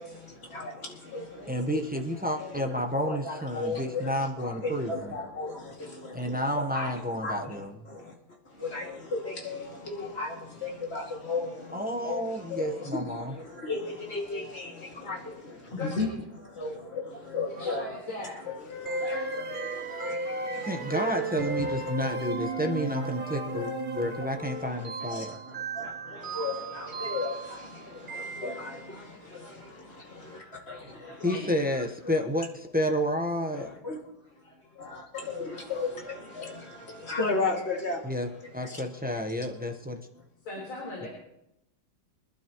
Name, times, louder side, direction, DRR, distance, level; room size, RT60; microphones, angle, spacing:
voice 1, 0.0-1.8 2.3-8.1 8.5-16.1 16.5-17.9 18.7-21.9 23.0-23.1 23.4-23.7 24.3-31.4 33.5-34.0 34.7-38.1 38.6-38.8, left 3 dB, 30° left, 2.5 m, -36 dB
voice 2, 1.5-5.1 6.1-7.7 11.7-13.3 20.6-25.3 29.4-29.5 30.9-31.0 31.2-33.7 38.0-38.3 38.5-40.0 41.0-41.1, equal, 10° right, 0.4 m, -30 dB
voice 3, 15.7-16.0 17.6-18.5 19.1-19.2 20.3-20.4 30.1-30.5 31.2-31.4 34.4-34.5 34.8-34.9 40.4-41.1, left 2 dB, 80° left, 4.9 m, -39 dB
Wind instrument woodwind instrument, 18.4-21.2 21.6-24.7, left 6 dB, 60° left, 1.3 m, -42 dB
sound 1, 18.9-29.0, right 4 dB, 70° right, 0.4 m, -35 dB
24.5 x 11.5 x 3.1 m
omnidirectional pair, 2.2 m